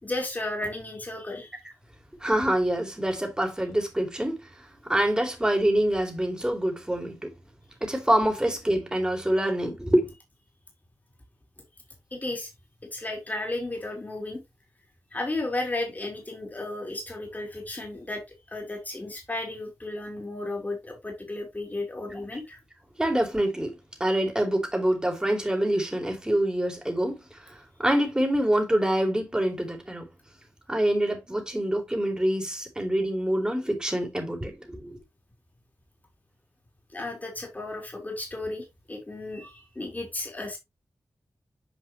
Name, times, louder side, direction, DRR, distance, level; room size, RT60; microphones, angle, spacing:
voice 1, 0.0-1.5 12.1-12.5 12.9-14.4 15.1-18.2 18.5-22.6 36.9-40.6, left 2 dB, 30° left, 3.3 m, -34 dB
voice 2, 2.2-7.3 7.8-10.1 22.1-22.4 23.0-23.7 24.0-30.1 30.7-35.0, right 1 dB, 15° right, 2.8 m, -26 dB
8.5 x 5.1 x 3.1 m
wide cardioid pair, 85°, 6 cm